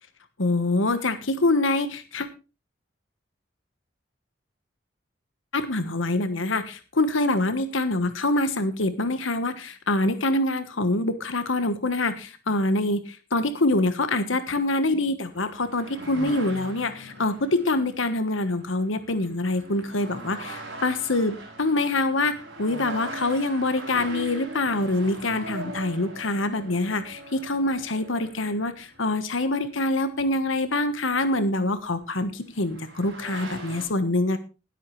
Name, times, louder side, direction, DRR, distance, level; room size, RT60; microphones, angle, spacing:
voice 1, 0.4-2.3 5.5-34.4, left 2 dB, 80° left, 11 dB, 1.2 m, -25 dB
sound 1, 15.3-30.7 32.0-32.1 32.5-33.9, right 1 dB, 65° right, 6.1 m, -41 dB
20.0 x 8.2 x 3.2 m, 0.31 s
head